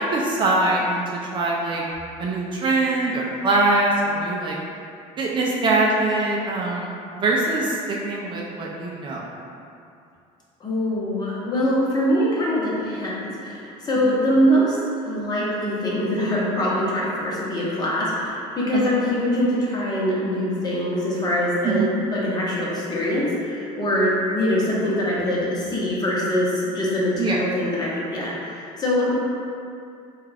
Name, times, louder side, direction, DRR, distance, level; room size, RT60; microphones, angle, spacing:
voice 1, 0.0-1.8 2.2-4.6 5.2-9.3 18.7-18.9 21.6-21.9 27.2-27.4, right 2 dB, 35° right, -3 dB, 0.4 m, -23 dB
voice 2, 10.6-14.8 15.0-29.1, equal, 30° left, -6 dB, 0.8 m, -23 dB
3.4 x 2.4 x 3.3 m, 2.5 s
cardioid pair, 120°, 15 cm